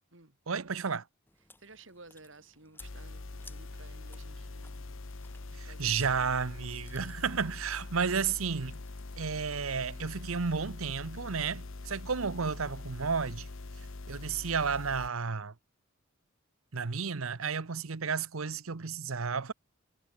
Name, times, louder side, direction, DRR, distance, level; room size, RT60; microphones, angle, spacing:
voice 1, 0.5-1.0 5.5-8.8 9.2-13.5 14.1-15.5 16.7-19.5, right 5 dB, 80° right, 0.9 m, -32 dB
Chewing mastication, 1.3-10.1, left 3 dB, 10° left, 3.4 m, -59 dB
voice 2, 1.6-5.0 5.6-6.3, right 3 dB, 60° right, 3.3 m, -55 dB
sound 1, 2.8-15.1, left 2 dB, 70° left, 1.1 m, -43 dB
head